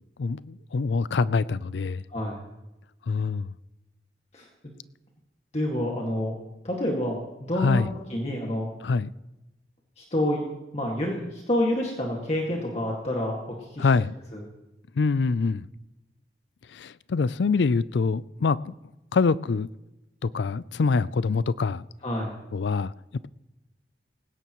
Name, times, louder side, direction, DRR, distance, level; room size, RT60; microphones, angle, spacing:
voice 1, 0.2-2.0 3.1-3.5 7.6-7.9 8.8-9.1 13.8-14.1 15.0-15.7 16.7-18.7 19.1-19.7 20.2-21.9 22.5-22.9, left 4 dB, 85° left, 0.4 m, -25 dB
voice 2, 5.5-6.4 6.6-7.8 8.1-8.7 10.0-10.4 10.7-13.9 14.3-14.4 22.0-22.3, left 1 dB, 35° left, 2.0 m, -28 dB
19.0 x 16.5 x 3.1 m
head